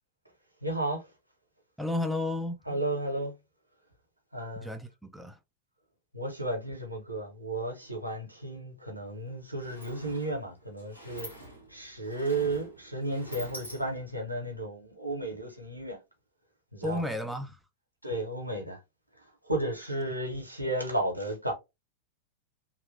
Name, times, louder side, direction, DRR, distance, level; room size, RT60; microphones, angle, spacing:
voice 1, 0.6-1.1 2.7-3.3 4.3-4.7 6.1-16.0 16.7-17.1 18.0-18.8 19.4-21.5, right 1 dB, 85° right, 0.8 m, -33 dB
voice 2, 1.8-2.6 4.6-5.4 16.8-17.6, left 1 dB, 5° right, 0.4 m, -32 dB
Sliding door, 8.9-9.1 9.3-14.3, equal, 85° left, 1.2 m, -47 dB
2.9 x 2.4 x 2.7 m
figure-of-eight pair, 90°, 0 cm